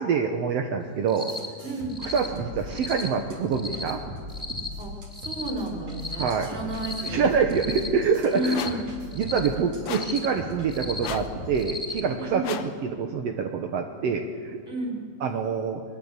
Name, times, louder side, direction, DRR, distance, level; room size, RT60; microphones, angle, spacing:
voice 1, 0.0-1.3 2.0-4.0 6.2-6.5 7.1-8.6 9.1-12.6 12.8-14.6 15.2-15.8, right 6 dB, 70° right, 4 dB, 1.6 m, -26 dB
Cricket, 1.1-1.5 1.9-2.3 2.7-3.1 3.5-3.9 4.3-4.7 5.1-5.5 5.9-6.3 6.7-7.1 7.5-7.9 8.3-8.7 9.1-9.5 9.9-10.2 10.7-11.1 11.5-12.0, left 2 dB, ahead, 2.5 m, -35 dB
sound 1, 1.2-11.6, equal, 40° right, 4.4 m, -40 dB
voice 2, 1.6-2.0 4.8-7.4 8.3-8.9 12.2-12.6 14.7-15.0, right 1 dB, 15° right, -1 dB, 3.8 m, -32 dB
sound 2, 8.5-8.9 9.8-10.2 11.0-11.4 12.4-12.8, left 9 dB, 65° left, 2.1 m, -35 dB
21.5 x 21.0 x 8.1 m, 2.1 s
omnidirectional pair, 4.3 m